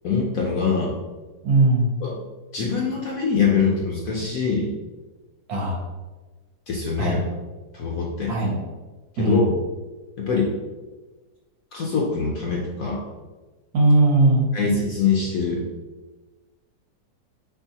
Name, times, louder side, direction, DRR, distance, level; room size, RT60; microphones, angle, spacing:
voice 1, 0.0-0.9 2.0-2.1 2.5-4.7 6.7-7.2 7.7-8.3 9.1-9.5 10.2-10.5 11.7-13.0 14.5-15.6, left 5 dB, 65° left, -2 dB, 0.9 m, -23 dB
voice 2, 1.4-1.9 5.5-5.8 7.0-7.2 8.3-8.6 9.2-9.5 13.7-14.5, right 2 dB, 65° right, -1 dB, 1.1 m, -19 dB
4.6 x 3.5 x 2.8 m, 1.2 s
omnidirectional pair, 2.0 m